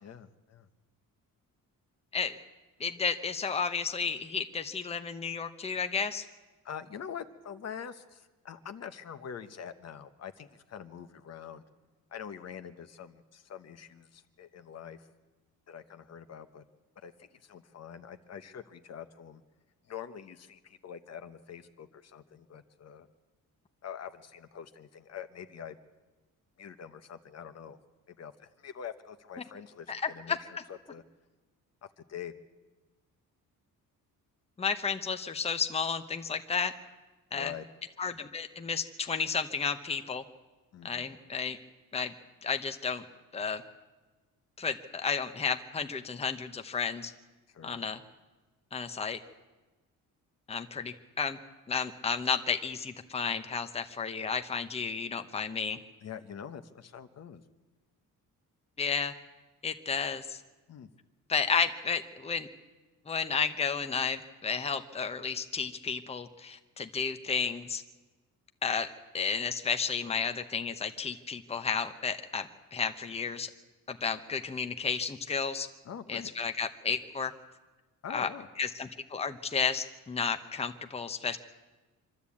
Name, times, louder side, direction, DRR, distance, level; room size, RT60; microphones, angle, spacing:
voice 1, 0.0-0.7 6.6-11.6 12.1-15.1 15.7-16.6 17.0-19.4 19.9-23.1 23.8-25.8 26.6-27.8 28.1-31.0 32.0-32.3 37.3-37.6 40.7-41.1 47.5-47.8 56.0-57.4 60.7-60.9 75.8-76.3 78.0-78.5, left 8 dB, 50° left, 9 dB, 1.1 m, -45 dB
voice 2, 2.8-6.3 29.9-30.4 34.6-36.7 37.3-37.5 38.0-40.2 40.8-41.6 41.9-42.1 42.4-43.0 43.3-43.6 44.6-47.1 47.6-48.0 48.7-49.2 50.5-51.4 51.7-55.8 58.8-59.1 59.6-60.4 61.3-62.5 63.1-67.8 68.6-68.9 69.1-73.5 73.9-75.7 76.1-77.3 78.1-78.3 78.6-81.4, left 5 dB, 20° left, 7 dB, 1.0 m, -32 dB
25.0 x 12.5 x 8.6 m, 1.2 s
cardioid pair, 140°, 34 cm